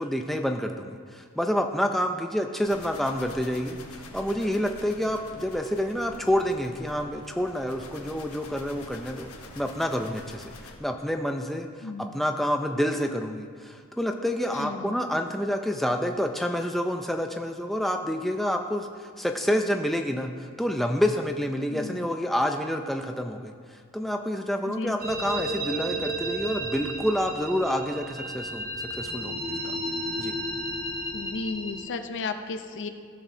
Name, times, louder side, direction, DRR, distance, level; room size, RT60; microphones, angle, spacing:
voice 1, 0.0-9.3 9.6-10.5 10.8-23.5 23.9-29.6 30.2-30.3, equal, ahead, 4 dB, 0.3 m, -28 dB
sound 1, 2.6-10.8, left 2 dB, 80° left, 1.0 m, -45 dB
voice 2, 11.8-12.2 14.5-15.0 21.7-22.0 24.7-25.0 31.1-32.9, left 3 dB, 55° left, 8 dB, 0.6 m, -34 dB
sound 2, 25.0-31.9, right 1 dB, 40° right, 1.0 m, -33 dB
15.0 x 6.1 x 2.7 m, 2.1 s
head